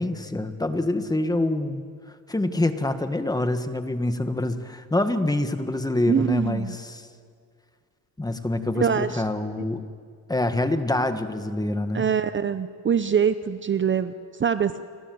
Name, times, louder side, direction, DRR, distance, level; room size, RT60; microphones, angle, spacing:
voice 1, 0.0-1.8 2.3-7.1 8.2-9.8 10.3-12.1, left 2 dB, 10° left, 8 dB, 1.6 m, -26 dB
voice 2, 6.1-6.7 8.8-9.2 11.9-14.1 14.4-14.8, right 7 dB, 30° right, 11 dB, 0.8 m, -23 dB
29.5 x 24.0 x 7.9 m, 2.1 s
cardioid pair, 125°, 36 cm